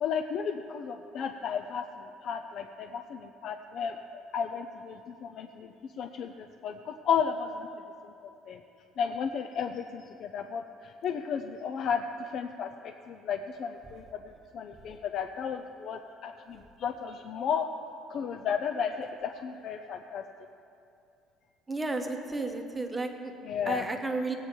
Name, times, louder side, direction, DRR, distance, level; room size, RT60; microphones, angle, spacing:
voice 1, 0.0-4.0 4.3-7.7 8.5-8.6 9.0-14.2 14.5-17.7 18.1-20.2 23.4-23.9, left 7 dB, 45° left, 6 dB, 0.4 m, -33 dB
voice 2, 21.7-23.3 23.6-24.3, right 3 dB, 10° right, 4 dB, 0.9 m, -32 dB
17.5 x 8.4 x 4.4 m, 2.7 s
cardioid pair, 155°, 0 cm